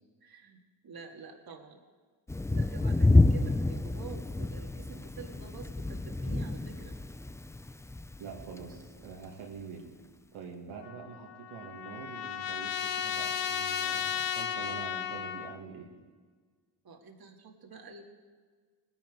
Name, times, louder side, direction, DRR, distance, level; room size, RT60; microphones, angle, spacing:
voice 1, 0.2-1.8 2.5-6.9 16.8-18.0, right 5 dB, 50° right, 2 dB, 2.0 m, -48 dB
Thunder, 2.3-9.1, left 2 dB, 5° left, 0.4 m, -28 dB
voice 2, 8.2-9.9 10.3-15.9, right 5 dB, 85° right, -1 dB, 2.3 m, -45 dB
Trumpet, 10.8-15.5, left 9 dB, 60° left, 1.1 m, -34 dB
19.0 x 10.5 x 4.9 m, 1.5 s
supercardioid pair, 60°, 49 cm